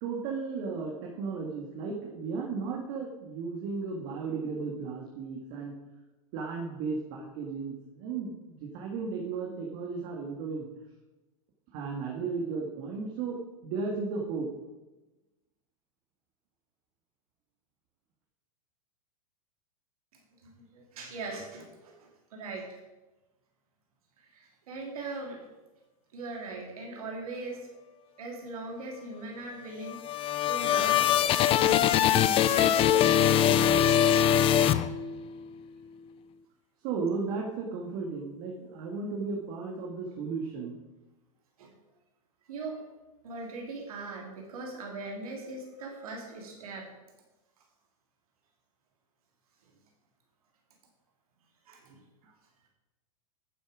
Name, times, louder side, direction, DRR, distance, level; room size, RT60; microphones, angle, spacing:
voice 1, 0.0-5.7 6.3-10.7 11.7-14.5 36.8-40.8 52.2-52.3, right 4 dB, 50° right, -1 dB, 1.9 m, -35 dB
voice 2, 20.4-22.8 24.2-25.4 26.1-27.7 28.2-31.2 31.6-33.1 33.4-34.2 41.6-41.7 42.5-42.8 43.2-46.9 51.7-52.0, right 3 dB, 75° right, 0 dB, 3.0 m, -40 dB
sound 1, 29.8-35.4, left 10 dB, 30° left, 0.5 m, -23 dB
11.0 x 7.5 x 5.0 m, 1.1 s
hypercardioid pair, 115°, 19 cm